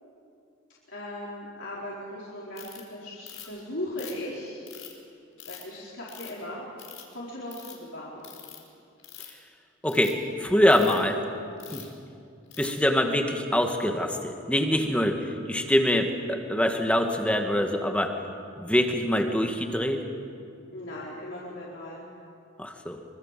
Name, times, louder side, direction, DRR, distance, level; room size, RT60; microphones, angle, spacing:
voice 1, 0.9-4.6 5.4-6.7 7.1-8.3 20.7-22.0, left 1 dB, 60° left, -6 dB, 4.4 m, -38 dB
Ratchet pawl, 2.6-2.8 3.3-3.6 4.0-4.9 5.4-5.6 6.1-6.4 6.8-7.1 7.4-7.7 8.2-8.6 9.0-9.4 9.8-10.1 10.7-11.0 11.6-11.9 12.5-12.8, left 12 dB, 80° left, 4.7 m, -44 dB
voice 2, 9.8-11.2 11.7-11.9 12.6-18.1 18.6-20.0 22.6-23.0, left 1 dB, 5° left, 4 dB, 1.7 m, -24 dB
25.0 x 25.0 x 7.6 m, 2.5 s
head